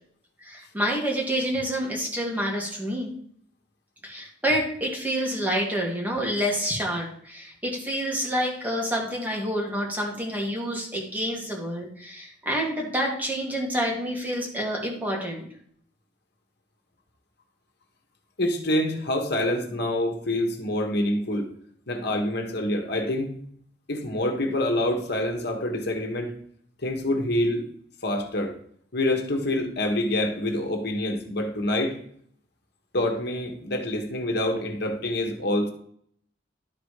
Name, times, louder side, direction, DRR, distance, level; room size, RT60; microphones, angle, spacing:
voice 1, 0.4-3.1 4.0-15.5, equal, 10° right, -1 dB, 2.3 m, -28 dB
voice 2, 18.4-21.5 21.9-23.3 23.9-26.3 26.8-27.6 28.0-28.5 28.9-31.9 32.9-35.7, left 1 dB, 60° left, 3 dB, 1.6 m, -26 dB
12.0 x 4.0 x 5.0 m, 0.63 s
head